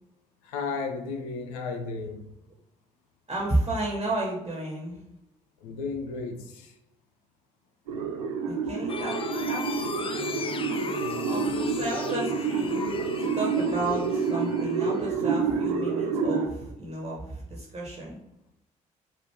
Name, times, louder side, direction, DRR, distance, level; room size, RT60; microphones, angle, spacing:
voice 1, 0.4-2.3 5.6-6.7 11.0-11.7, left 4 dB, 75° left, 0.7 m, -34 dB
voice 2, 3.3-5.0 8.4-9.2 9.5-10.2 11.2-12.8 13.2-18.2, right 2 dB, 25° right, 1.5 m, -32 dB
sound 1, 7.9-16.5, right 5 dB, 80° right, 0.6 m, -28 dB
sound 2, 8.9-15.1, left 5 dB, 30° left, 0.5 m, -38 dB
5.2 x 2.5 x 3.5 m
hypercardioid pair, 45°, 18 cm